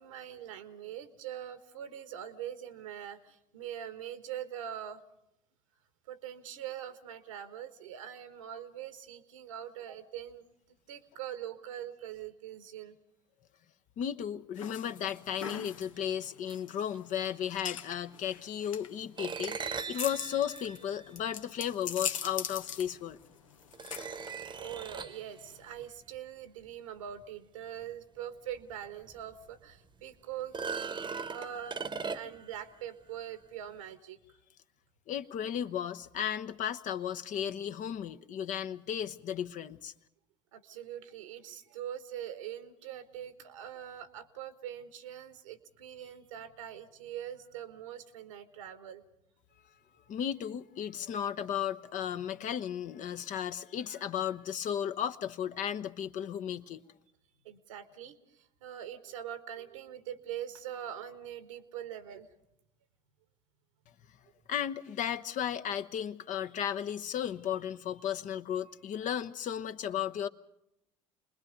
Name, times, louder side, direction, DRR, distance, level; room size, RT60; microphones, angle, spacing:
voice 1, 0.0-5.0 6.1-12.9 24.6-34.2 40.5-49.0 53.9-54.1 57.4-62.3, right 10 dB, 80° right, 11 dB, 1.4 m, -43 dB
voice 2, 14.0-23.2 35.1-39.9 50.1-56.8 64.5-70.3, left 9 dB, 50° left, 10 dB, 1.0 m, -35 dB
sound 1, 14.6-25.9, left 8 dB, 85° left, 0.8 m, -42 dB
sound 2, 19.2-21.7 22.9-23.0 23.7-25.3 28.6-28.7 29.1-29.2 30.4-32.5, right 5 dB, 30° right, 1.0 m, -39 dB
28.0 x 21.0 x 5.2 m, 0.82 s
hypercardioid pair, 60°, 16 cm